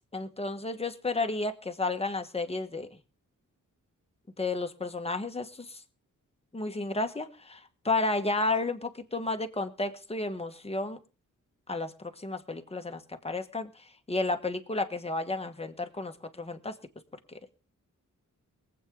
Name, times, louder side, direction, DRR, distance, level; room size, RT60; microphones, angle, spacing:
voice 1, 0.1-2.9 4.4-5.8 6.5-11.0 11.7-16.8 17.3-17.4, left 2 dB, 20° left, 7 dB, 1.3 m, -32 dB
23.0 x 8.2 x 3.7 m, 0.35 s
wide cardioid pair, 125°, 32 cm